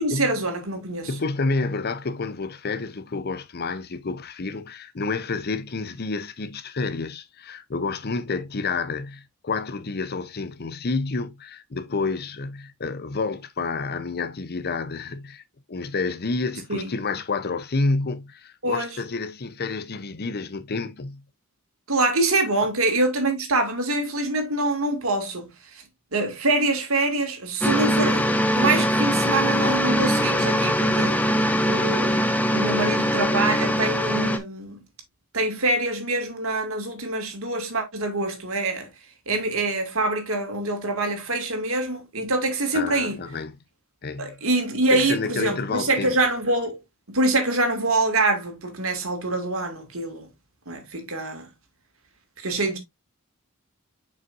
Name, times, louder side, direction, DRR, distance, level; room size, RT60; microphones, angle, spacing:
voice 1, 0.0-1.1 16.7-16.9 18.6-18.9 21.9-25.8 26.1-31.2 31.7-34.8 35.3-38.9 39.3-43.2 44.2-46.8 47.1-50.3 50.7-51.5 52.4-52.8, right 2 dB, 75° right, 2.3 m, -25 dB
voice 2, 1.1-15.4 15.7-21.2 42.7-43.6 44.0-44.4 44.9-46.2, left 3 dB, 50° left, 0.7 m, -29 dB
sound 1, 27.6-34.4, equal, 10° left, 0.9 m, -22 dB
7.6 x 5.7 x 2.6 m
head